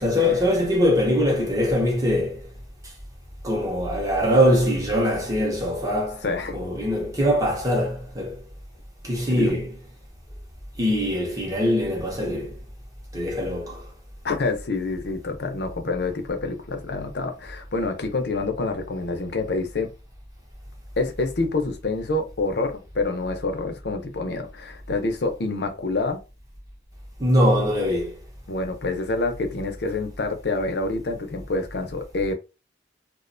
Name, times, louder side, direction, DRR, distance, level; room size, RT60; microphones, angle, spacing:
voice 1, 0.0-2.4 3.4-6.2 6.5-8.4 9.0-9.7 10.8-12.6 13.1-13.9 27.2-28.2, equal, 20° right, 0.6 m, -22 dB
voice 2, 6.2-6.6 9.4-9.5 14.2-19.9 21.0-26.2 28.5-32.3, left 3 dB, 55° left, 0.6 m, -27 dB
2.4 x 2.2 x 2.5 m
head